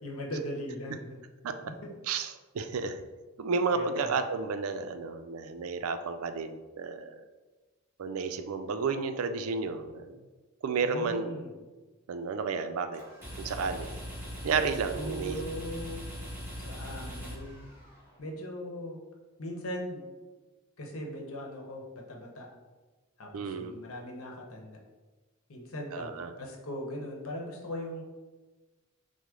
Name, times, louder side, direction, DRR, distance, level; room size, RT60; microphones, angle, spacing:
voice 1, 0.0-1.2 1.7-1.9 3.7-4.1 10.8-11.5 14.8-16.0 16.6-17.7 18.2-19.0 19.4-20.0 20.8-22.5 23.2-24.8 25.5-28.0, equal, 85° left, 0 dB, 0.9 m, -39 dB
voice 2, 2.1-3.0 3.4-7.2 8.0-10.2 10.6-11.3 12.1-13.0 13.4-14.0 14.4-15.4 23.3-23.7 25.9-26.3, right 5 dB, 80° right, 8 dB, 0.4 m, -32 dB
sound 1, 12.9-18.1, equal, 10° right, 1.2 m, -41 dB
6.2 x 2.1 x 3.7 m, 1.2 s
head